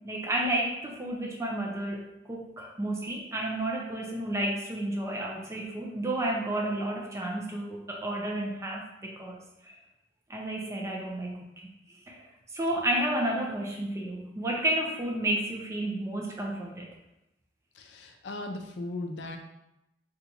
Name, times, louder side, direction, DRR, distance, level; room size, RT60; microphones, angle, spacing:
voice 1, 0.0-9.8 10.3-11.7 12.1-16.9, right 1 dB, 15° right, -1 dB, 0.4 m, -31 dB
voice 2, 17.9-19.4, left 2 dB, 70° left, 4 dB, 0.5 m, -37 dB
2.8 x 2.3 x 3.9 m, 0.89 s
head